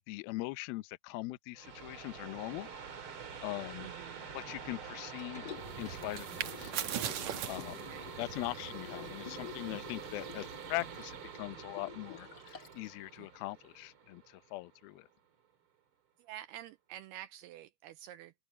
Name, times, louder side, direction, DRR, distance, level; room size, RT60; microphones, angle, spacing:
voice 1, 0.1-2.7 3.4-3.9 4.3-5.5 5.8-6.7 7.5-7.8 8.2-15.1, left 19 dB, 80° left, 2.2 m, -41 dB
sound 1, 1.6-14.9, right 7 dB, 40° right, 2.1 m, -47 dB
voice 2, 3.8-4.3 7.9-8.1 13.2-13.3 16.2-18.3, right 13 dB, 85° right, 2.3 m, -48 dB
Liquid, 5.2-12.9 13.3-13.4, left 9 dB, 45° left, 1.3 m, -50 dB
sound 2, 5.5-11.3, right 9 dB, 70° right, 1.7 m, -42 dB
open air
omnidirectional pair, 5.2 m